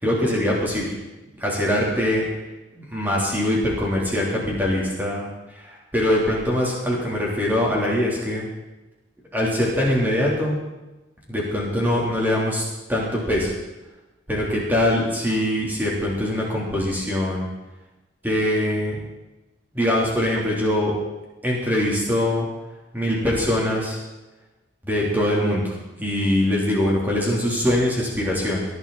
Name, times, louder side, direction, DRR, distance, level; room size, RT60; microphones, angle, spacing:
voice 1, 0.0-0.9 1.4-2.2 2.7-8.5 9.3-10.6 11.3-13.5 14.3-17.5 18.2-19.0 19.7-21.0 21.4-22.5 22.9-24.0 24.8-28.7, left 1 dB, 10° right, -4 dB, 3.5 m, -23 dB
18.0 x 11.5 x 4.2 m, 1.0 s
head